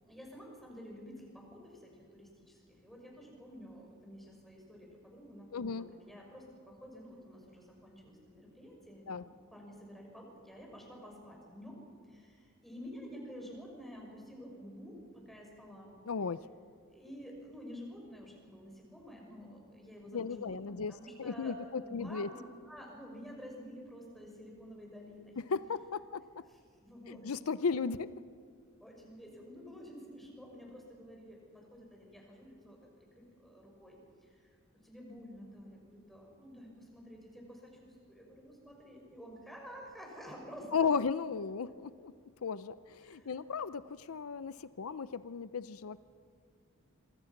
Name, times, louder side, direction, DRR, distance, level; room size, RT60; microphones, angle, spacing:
voice 1, 0.0-16.0 16.9-25.4 26.5-27.3 27.7-28.0 28.8-34.5 34.8-40.9 43.0-43.5, equal, ahead, -1 dB, 5.7 m, -50 dB
voice 2, 5.5-5.8 9.1-9.2 16.1-16.5 20.1-20.9 21.2-22.3 25.4-26.2 27.1-28.1 40.7-42.1 42.4-46.0, left 5 dB, 85° left, 15 dB, 0.6 m, -35 dB
26.5 x 24.5 x 6.0 m, 2.1 s
head